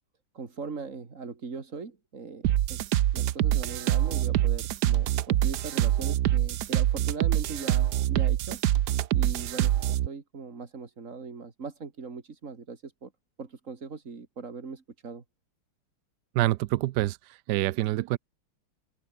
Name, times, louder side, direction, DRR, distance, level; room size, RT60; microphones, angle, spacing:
voice 1, 0.3-2.8 3.1-8.6 9.1-13.1 13.4-15.2, right 4 dB, 35° right, 2.6 m, -40 dB
sound 1, 2.4-10.1, right 13 dB, 65° right, 1.1 m, -25 dB
voice 2, 16.3-18.2, right 16 dB, 85° right, 0.9 m, -27 dB
open air
omnidirectional pair, 2.4 m